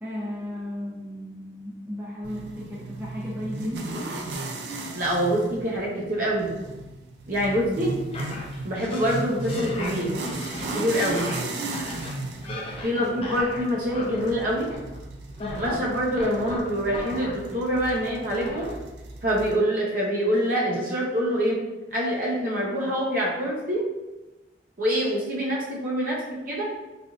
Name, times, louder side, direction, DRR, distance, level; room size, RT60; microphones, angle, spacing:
voice 1, 0.0-4.0 12.9-13.3, left 1 dB, 10° right, -7 dB, 0.5 m, -35 dB
sound 1, 2.2-19.6, right 2 dB, 70° right, 0.4 m, -36 dB
voice 2, 4.9-6.5 7.3-7.9 8.6-10.1 10.7-11.3 12.8-14.7 15.6-18.7 19.2-21.6 21.9-23.8 24.8-26.2 26.5-26.6, equal, 50° right, -4 dB, 0.8 m, -25 dB
sound 2, 8.1-14.3 14.6-15.0 15.3-18.2 18.4-18.7, left 2 dB, 35° left, 0.6 m, -37 dB
3.4 x 2.6 x 2.4 m, 1.1 s
head